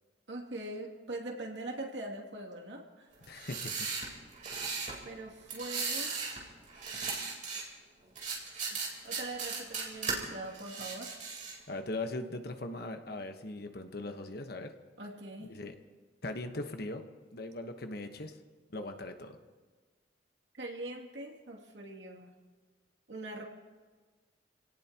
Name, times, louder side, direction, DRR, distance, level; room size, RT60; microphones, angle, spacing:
voice 1, 0.3-3.1 5.0-6.1 9.0-11.2 15.0-15.5 20.5-22.3 23.1-23.5, right 2 dB, 80° right, 0 dB, 2.6 m, -42 dB
sound 1, 3.2-5.0 5.5-6.4 6.7-7.6 8.2-10.2 10.5-11.6, right 5 dB, 45° right, 3.6 m, -37 dB
voice 2, 3.3-3.9 11.7-14.7 15.4-15.7 16.2-17.0 17.3-18.3 18.7-19.4, left 2 dB, 60° left, 6 dB, 1.2 m, -39 dB
27.5 x 17.5 x 3.0 m, 1.4 s
head